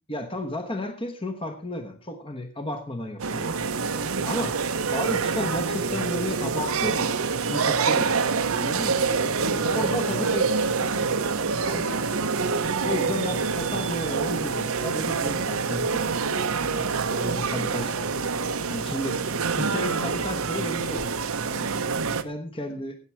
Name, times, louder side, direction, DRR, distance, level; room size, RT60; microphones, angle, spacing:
voice 1, 0.1-3.6 4.2-4.6 4.9-9.0 9.5-10.5 11.6-12.0 12.7-16.0 16.5-18.1 18.7-19.3 19.6-21.1 21.5-21.9 22.2-23.0, left 1 dB, 25° left, 7 dB, 1.1 m, -33 dB
sound 1, 3.2-22.2, right 5 dB, 80° right, 0.9 m, -26 dB
voice 2, 8.5-11.2, equal, 85° left, 4 dB, 3.0 m, -43 dB
17.0 x 7.4 x 4.5 m, 0.36 s
head